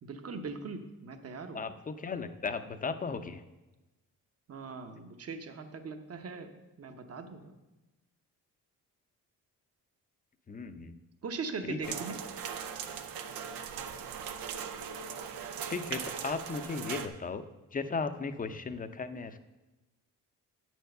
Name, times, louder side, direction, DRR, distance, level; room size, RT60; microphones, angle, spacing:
voice 1, 0.0-1.6 4.5-7.5 11.2-12.2, right 4 dB, 45° right, 7 dB, 1.0 m, -40 dB
voice 2, 1.5-3.4 10.5-11.0 11.6-12.0 15.7-17.4 17.7-19.4, left 4 dB, 25° left, 10 dB, 0.6 m, -36 dB
sound 1, 11.8-17.1, right 7 dB, 85° right, 0.7 m, -39 dB
8.5 x 4.6 x 6.6 m, 1.1 s
cardioid pair, 75°, 34 cm